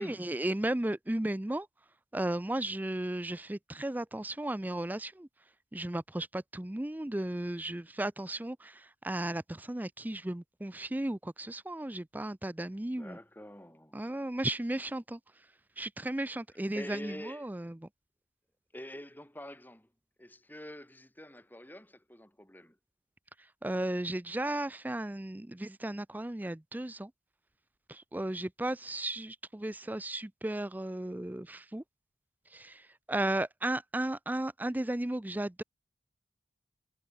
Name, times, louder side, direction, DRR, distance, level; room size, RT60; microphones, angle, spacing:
voice 1, 0.0-1.7 2.1-5.3 5.7-13.2 13.9-15.2 15.8-17.9 23.6-27.1 27.9-31.8 32.5-35.6, right 1 dB, 10° right, 0.4 m, -35 dB
voice 2, 13.0-14.0 16.7-17.4 18.7-19.9 20.2-22.8, left 1 dB, 10° left, 3.4 m, -46 dB
head